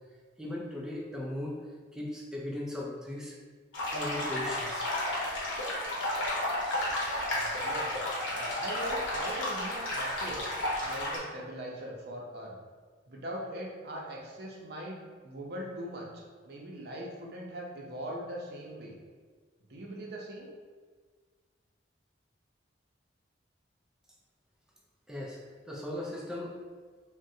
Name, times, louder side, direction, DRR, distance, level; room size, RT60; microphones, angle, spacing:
voice 1, 0.4-1.6 1.9-3.4 3.9-4.9 25.1-26.6, left 1 dB, 5° right, -3 dB, 0.4 m, -38 dB
sound 1, 3.7-11.2, left 1 dB, 80° left, 0.8 m, -32 dB
voice 2, 7.2-8.0 8.3-10.4 10.8-12.5 13.1-16.1 16.4-19.0 19.6-20.5, equal, 55° right, -2 dB, 0.6 m, -40 dB
3.6 x 2.1 x 2.6 m, 1.5 s
head